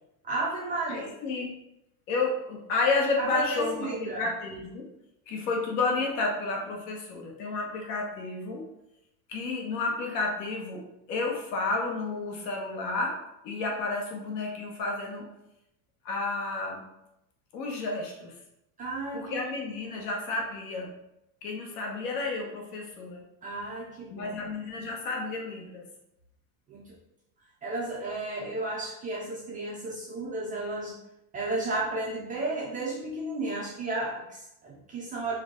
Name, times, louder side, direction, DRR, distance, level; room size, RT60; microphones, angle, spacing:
voice 1, 0.2-1.1 3.2-4.2 18.8-19.4 23.4-24.3 26.7-26.8 27.6-30.9 31.3-35.4, right 2 dB, 20° right, -4 dB, 0.3 m, -33 dB
voice 2, 0.9-1.5 2.1-4.8 5.3-8.6 9.3-10.8 11.1-13.2 13.4-15.3 16.0-16.8 17.5-18.3 19.1-20.9 21.4-23.2 24.1-25.8, left 3 dB, 75° left, 1 dB, 1.3 m, -31 dB
4.6 x 2.6 x 3.6 m, 0.85 s
supercardioid pair, 140°, 49 cm